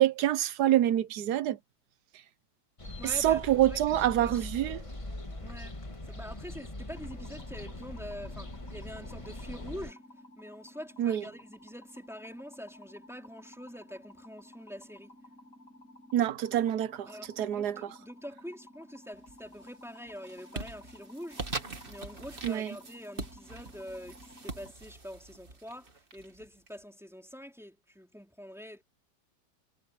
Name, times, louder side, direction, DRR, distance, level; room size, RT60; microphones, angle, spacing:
voice 1, 0.0-1.6 3.2-4.8 11.0-11.2 16.1-17.1 17.4-17.8 22.4-22.7, right 12 dB, 70° right, 1.3 m, -26 dB
sound 1, 2.8-9.9, left 1 dB, 20° left, 2.0 m, -41 dB
voice 2, 3.0-4.5 5.4-5.8 6.0-10.0 10.4-15.1 17.0-21.4 21.9-28.8, equal, ahead, 4.3 m, -45 dB
sound 2, 6.9-24.7, left 1 dB, 50° left, 6.7 m, -54 dB
sound 3, 19.2-19.7 20.1-26.7, right 3 dB, 30° right, 2.0 m, -42 dB
omnidirectional pair, 1.8 m